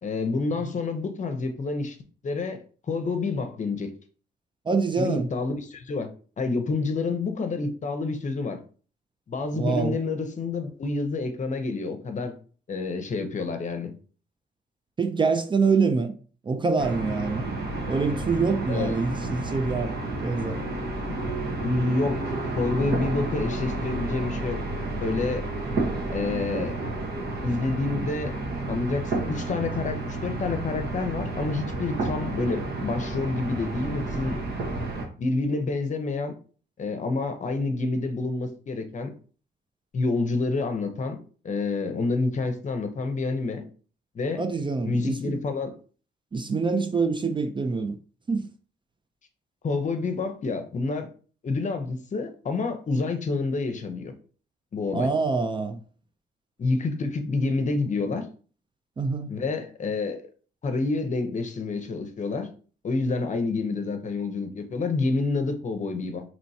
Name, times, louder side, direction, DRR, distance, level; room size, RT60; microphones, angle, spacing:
voice 1, 0.0-2.0 2.2-3.9 5.0-6.1 6.4-8.6 9.3-12.3 12.7-13.9 18.7-19.0 21.1-21.2 21.6-24.6 24.9-25.5 26.1-26.8 27.4-28.4 28.7-34.4 35.2-36.4 36.8-39.1 39.9-41.2 41.4-43.7 44.1-44.4 44.8-45.8 49.6-51.1 51.4-54.1 54.7-55.1 56.6-58.2 59.3-60.2 60.6-62.5 62.8-66.2, left 3 dB, 45° left, 0.7 m, -28 dB
voice 2, 4.7-5.3 9.5-10.0 15.0-16.1 16.4-17.5 17.9-20.6 44.4-45.4 46.3-48.0 48.3-48.5 54.9-55.8 59.0-59.3, right 4 dB, 25° right, 0.4 m, -25 dB
sound 1, 16.8-35.1, right 2 dB, 65° right, 1.2 m, -31 dB
4.4 x 3.0 x 2.7 m
cardioid pair, 110°, 18 cm